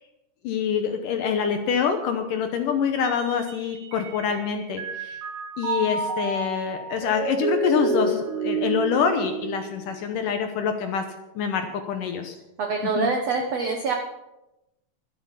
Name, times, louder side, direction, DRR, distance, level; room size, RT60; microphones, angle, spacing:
voice 1, 0.4-5.2 5.6-11.1 11.4-12.4 13.0-13.1, left 7 dB, 70° left, 6 dB, 2.1 m, -26 dB
Mallet percussion, 3.0-4.4 4.8-10.2, right 3 dB, 60° right, 2.6 m, -29 dB
voice 2, 12.6-13.9, right 4 dB, 85° right, 3 dB, 1.4 m, -25 dB
12.5 x 12.0 x 5.6 m, 0.94 s
omnidirectional pair, 4.7 m